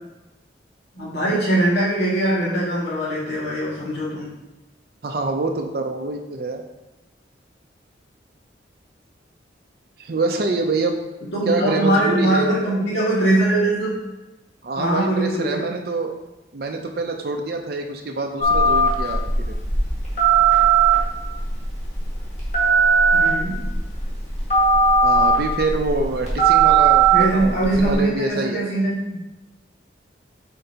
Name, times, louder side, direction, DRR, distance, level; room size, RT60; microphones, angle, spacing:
voice 1, 1.0-4.3 11.3-13.9 14.8-15.6 23.1-23.6 27.1-29.2, right 1 dB, 65° left, -8 dB, 2.0 m, -21 dB
voice 2, 5.0-6.6 10.0-12.5 14.6-16.1 16.5-19.5 25.0-28.6, right 3 dB, 55° right, 2 dB, 0.5 m, -26 dB
Telephone, 18.4-28.0, right 4 dB, 40° left, 1.8 m, -18 dB
7.6 x 4.4 x 2.8 m, 1.0 s
head